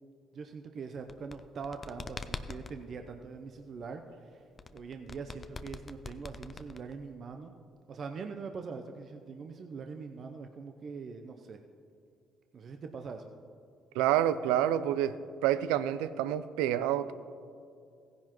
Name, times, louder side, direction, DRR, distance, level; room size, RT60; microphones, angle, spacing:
voice 1, 0.3-4.4 4.7-7.5 7.9-11.6 12.5-13.3, right 5 dB, 55° right, 5 dB, 0.6 m, -43 dB
sound 1, 1.0-2.8 4.6-7.1, left 4 dB, 35° left, 0.5 m, -43 dB
voice 2, 14.0-15.1 15.4-17.1, right 11 dB, 90° right, 14 dB, 0.4 m, -28 dB
16.0 x 10.5 x 3.0 m, 2.4 s
supercardioid pair, 65°, 0 cm